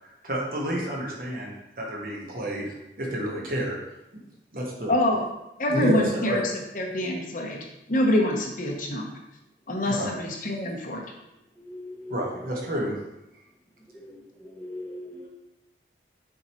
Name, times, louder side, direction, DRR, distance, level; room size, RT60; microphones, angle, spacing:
voice 1, 0.2-3.8 4.5-4.9 5.7-6.4 9.8-10.1 12.1-13.0, right 1 dB, 50° right, -2 dB, 1.3 m, -29 dB
voice 2, 4.9-5.2 5.6-6.4 6.7-7.6 7.9-9.1 9.7-11.0, left 1 dB, 45° left, 0 dB, 0.9 m, -25 dB
voice 3, 11.6-12.2 14.0-15.3, left 1 dB, 10° left, -2 dB, 0.8 m, -40 dB
6.7 x 4.6 x 3.0 m, 0.89 s
head